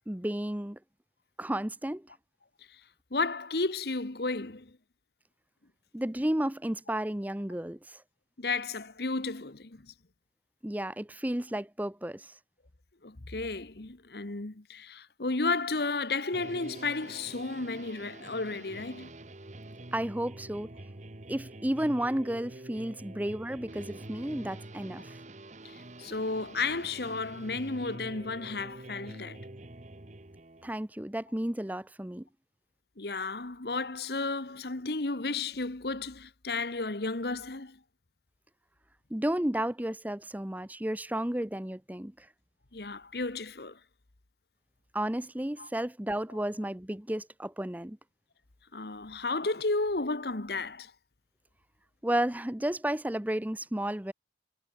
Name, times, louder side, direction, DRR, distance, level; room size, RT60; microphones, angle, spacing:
voice 1, 0.1-0.8 1.4-2.1 5.9-8.0 10.6-12.3 19.9-20.7 21.3-25.2 30.6-32.2 39.1-42.3 44.9-48.0 52.0-54.1, right 1 dB, 10° right, 0.7 m, -32 dB
voice 2, 3.1-4.8 8.4-9.9 13.0-19.1 25.6-29.4 33.0-37.8 42.7-43.8 45.6-45.7 48.7-50.9, left 3 dB, 60° left, 1.3 m, -33 dB
sound 1, 16.3-30.7, right 2 dB, 40° right, 1.2 m, -46 dB
head